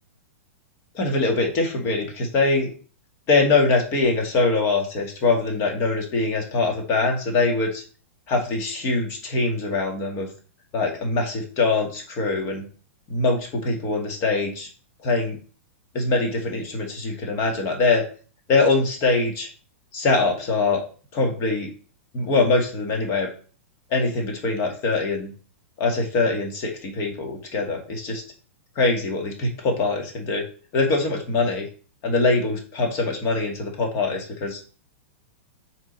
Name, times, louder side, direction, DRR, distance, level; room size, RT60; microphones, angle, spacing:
voice 1, 0.9-2.7 3.3-7.8 8.3-10.3 10.7-12.7 13.1-14.7 15.0-15.4 15.9-18.0 18.5-19.5 19.9-20.8 21.1-21.7 22.1-23.3 23.9-25.3 25.8-28.2 28.8-30.4 30.7-31.7 32.0-34.6, left 3 dB, 40° left, 3 dB, 2.0 m, -23 dB
6.0 x 3.8 x 4.3 m, 0.39 s
hypercardioid pair, 125°, 7 cm